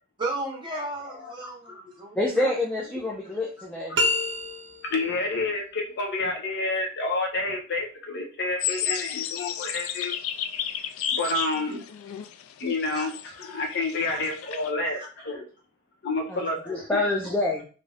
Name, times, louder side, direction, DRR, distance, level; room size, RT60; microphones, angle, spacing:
voice 1, 0.2-2.4 12.9-13.1 14.1-14.2 14.9-15.0, right 2 dB, 20° right, -1 dB, 0.8 m, -34 dB
voice 2, 1.2-1.8 2.4-2.5 3.9-4.0 4.8-10.2 11.2-11.8 12.6-15.5 16.0-17.0, left 2 dB, 55° left, 2 dB, 0.6 m, -29 dB
voice 3, 2.2-4.0 16.3-16.4 16.7-17.7, left 2 dB, 5° left, -3 dB, 0.4 m, -27 dB
sound 1, 3.9-5.1, left 1 dB, 60° right, 0.6 m, -26 dB
sound 2, 8.6-14.7, left 9 dB, 90° left, 0.3 m, -33 dB
2.6 x 2.5 x 3.2 m, 0.37 s
head